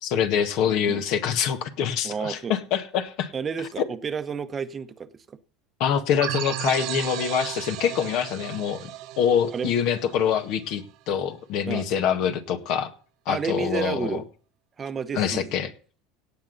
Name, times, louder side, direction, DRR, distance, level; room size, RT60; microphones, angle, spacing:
voice 1, 0.0-3.3 3.8-3.9 5.8-8.9 9.2-12.9 13.2-14.2 15.1-15.7, left 8 dB, 60° left, 1.8 m, -25 dB
voice 2, 2.0-2.5 3.3-5.4 9.5-9.7 11.7-11.9 13.3-14.2 14.8-15.5, right 6 dB, 25° right, 1.0 m, -31 dB
sound 1, 6.2-10.7, right 14 dB, 60° right, 1.2 m, -34 dB
17.5 x 8.3 x 4.1 m
supercardioid pair, 115°, 0 cm